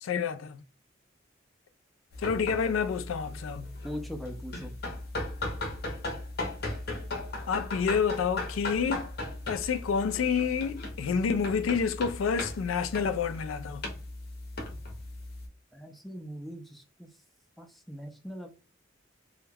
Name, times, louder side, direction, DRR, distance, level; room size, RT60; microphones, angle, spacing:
voice 1, 0.0-0.6 2.2-3.7 7.5-9.1 9.5-13.8, left 6 dB, 85° left, 0.3 m, -29 dB
sound 1, 2.1-15.5, left 2 dB, 50° left, 0.7 m, -37 dB
voice 2, 3.8-4.7 15.7-17.1 17.6-18.5, equal, ahead, 0.4 m, -41 dB
2.3 x 2.1 x 3.2 m
head